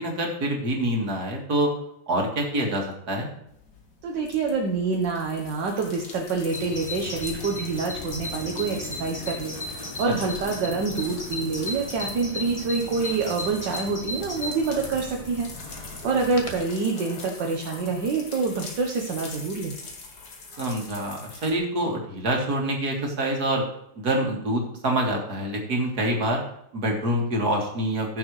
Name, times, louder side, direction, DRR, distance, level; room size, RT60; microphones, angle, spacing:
voice 1, 0.0-1.7 2.1-3.3 20.6-23.6 24.0-26.4 26.7-28.2, right 1 dB, 55° right, 0 dB, 2.5 m, -26 dB
sound 1, 3.5-21.5, left 3 dB, 65° left, 2.3 m, -43 dB
voice 2, 4.0-19.7, right 4 dB, 70° right, 0 dB, 1.7 m, -27 dB
Bird vocalization bird call bird song, 6.5-16.6, left 1 dB, 20° left, 1.3 m, -36 dB
15.5 x 7.0 x 3.2 m, 0.76 s
omnidirectional pair, 2.0 m